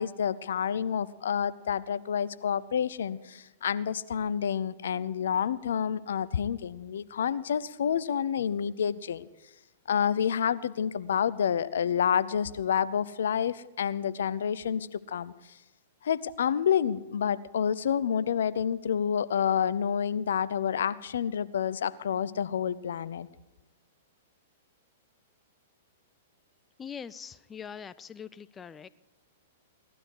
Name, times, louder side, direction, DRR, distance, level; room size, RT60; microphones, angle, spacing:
voice 1, 0.0-9.2 9.9-15.3 16.0-23.3, left 8 dB, 70° left, 17 dB, 0.6 m, -29 dB
voice 2, 26.8-28.9, left 7 dB, 20° left, 17 dB, 0.4 m, -42 dB
18.0 x 12.5 x 4.7 m, 1.0 s
hypercardioid pair, 115°, 0 cm